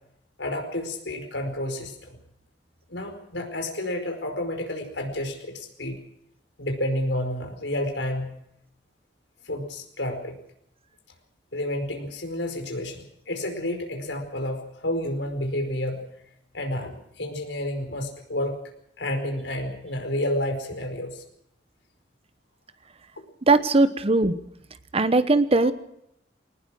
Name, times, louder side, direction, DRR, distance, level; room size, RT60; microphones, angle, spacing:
voice 1, 0.4-2.2 2.9-6.0 6.6-8.3 9.4-10.4 11.5-16.1 16.5-18.6 19.0-21.2 25.6-25.7, left 1 dB, 90° left, 5 dB, 4.8 m, -30 dB
voice 2, 23.5-24.3 24.9-25.7, right 3 dB, 35° right, 12 dB, 1.0 m, -19 dB
21.5 x 19.5 x 6.3 m, 0.77 s
head